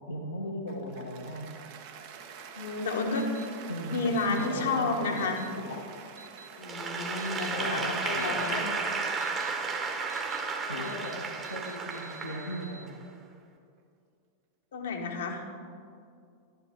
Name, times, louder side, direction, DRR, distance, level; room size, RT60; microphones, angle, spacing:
voice 1, 0.1-1.5 3.7-5.8 7.5-8.7 10.7-12.9, left 1 dB, 80° left, -5 dB, 1.3 m, -37 dB
Cheering / Applause, 0.7-12.9, right 6 dB, 50° right, 1.0 m, -49 dB
voice 2, 2.5-3.2 3.9-5.4 6.6-8.9 10.8-10.9 14.7-15.4, left 3 dB, 60° left, 3 dB, 1.4 m, -31 dB
sound 1, 3.1-3.5 4.2-4.5 5.2-5.5 6.2-6.5 7.2-7.5 8.2-8.5 9.2-9.5 10.1-10.4 10.8-11.1 11.4-12.8, right 4 dB, 65° right, 0.7 m, -50 dB
Applause / Crowd, 6.6-13.0, right 4 dB, 25° right, 1.3 m, -33 dB
11.5 x 11.0 x 4.4 m, 2.4 s
figure-of-eight pair, 90°, 0 cm